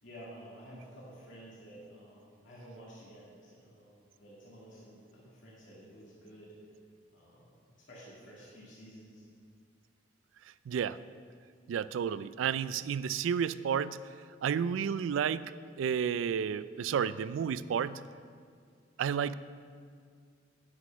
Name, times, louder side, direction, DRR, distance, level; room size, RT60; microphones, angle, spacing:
voice 1, 0.0-6.6 7.1-7.5 7.9-9.3, equal, 80° left, -6 dB, 2.1 m, -51 dB
voice 2, 10.7-11.0 11.7-14.0 14.4-18.0 19.0-19.3, right 7 dB, 85° right, 16 dB, 0.3 m, -31 dB
9.6 x 6.1 x 5.8 m, 2.1 s
head